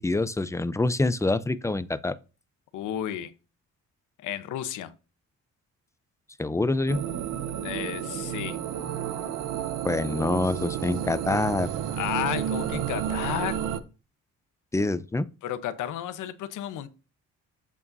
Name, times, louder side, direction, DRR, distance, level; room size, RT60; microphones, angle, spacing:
voice 1, 0.0-2.2 6.4-7.1 9.8-11.7 14.7-15.3, left 2 dB, 10° left, 0.5 m, -26 dB
voice 2, 2.7-3.3 4.2-4.9 7.6-8.6 12.0-13.6 15.4-16.9, left 11 dB, 85° left, 0.9 m, -32 dB
sound 1, 6.9-13.8, right 9 dB, 80° right, 0.8 m, -31 dB
8.5 x 7.2 x 2.7 m
cardioid pair, 90°, 30 cm